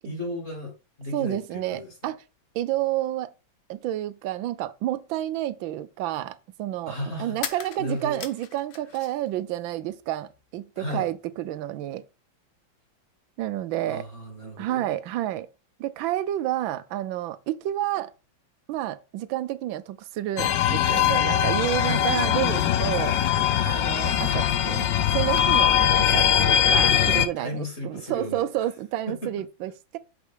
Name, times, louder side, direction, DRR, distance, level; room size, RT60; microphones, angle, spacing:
voice 1, 0.0-0.7 1.0-1.9 6.9-8.2 10.8-11.1 13.9-14.8 21.8-22.1 27.1-28.4 29.1-29.3, left 1 dB, 35° left, 2.9 m, -34 dB
voice 2, 1.1-2.2 2.5-3.3 3.7-12.0 13.4-14.1 14.6-15.5 15.8-18.1 18.7-23.2 23.6-30.0, right 13 dB, 80° right, 1.4 m, -30 dB
sound 1, 5.1-5.2 7.3-9.3 9.6-10.5, left 9 dB, 85° left, 1.7 m, -39 dB
sound 2, 20.4-27.3, left 10 dB, 70° left, 1.2 m, -21 dB
6.7 x 5.2 x 4.6 m
omnidirectional pair, 2.2 m